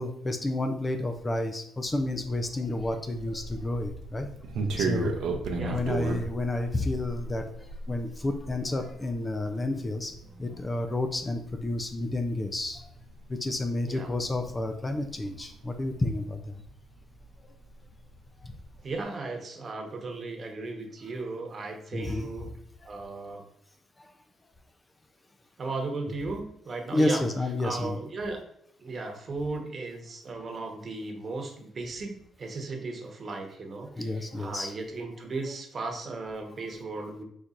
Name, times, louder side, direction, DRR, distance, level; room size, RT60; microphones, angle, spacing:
voice 1, 0.0-4.3 4.8-5.1 5.7-12.8 13.3-16.6 21.9-22.3 22.8-22.9 24.0-24.1 26.9-28.0 34.0-34.7, left 2 dB, 20° left, 5 dB, 0.5 m, -30 dB
sound 1, 1.8-17.4 17.6-18.9, right 3 dB, 80° right, 0.7 m, -37 dB
voice 2, 18.8-22.6 22.8-23.4 25.6-27.2 27.6-28.4 28.8-37.2, right 3 dB, 45° right, 3 dB, 1.1 m, -36 dB
4.5 x 4.1 x 2.5 m, 0.72 s
cardioid pair, 90°, 0 cm